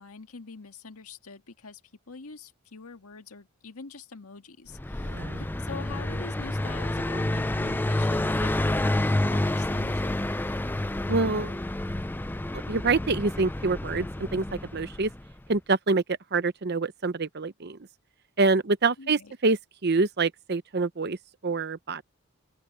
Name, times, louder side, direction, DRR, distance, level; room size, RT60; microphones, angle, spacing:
voice 1, 0.0-1.8 2.1-10.4 19.0-19.3, left 4 dB, 85° left, 1.8 m, -44 dB
Car passing by, 4.7-15.3, left 1 dB, 10° left, 0.4 m, -29 dB
voice 2, 5.0-5.4 11.1-11.6 12.7-14.1 14.3-14.4 14.7-15.1 15.5-17.8 18.4-21.2 21.4-22.0, right 3 dB, 50° right, 0.8 m, -26 dB
open air
head